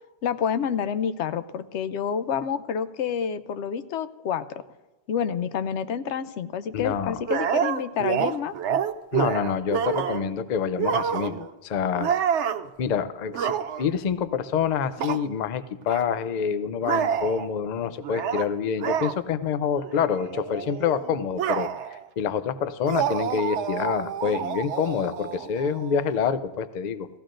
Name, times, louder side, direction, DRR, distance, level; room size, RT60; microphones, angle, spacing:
voice 1, 0.2-4.6 5.1-8.5, left 7 dB, 85° left, 11 dB, 0.9 m, -28 dB
voice 2, 6.7-7.2 9.1-12.2 12.8-27.1, left 7 dB, 50° left, 12 dB, 0.5 m, -27 dB
Robin - Frog, 7.3-10.3 10.8-11.5 12.0-12.7 13.3-14.0 15.0-15.2 15.9-16.0 16.8-17.5 18.0-18.5 18.8-19.1 19.7-19.9 20.2-22.0 22.8-26.2, right 8 dB, 85° right, 0.9 m, -28 dB
17.5 x 14.0 x 2.6 m, 1.1 s
omnidirectional pair, 1.2 m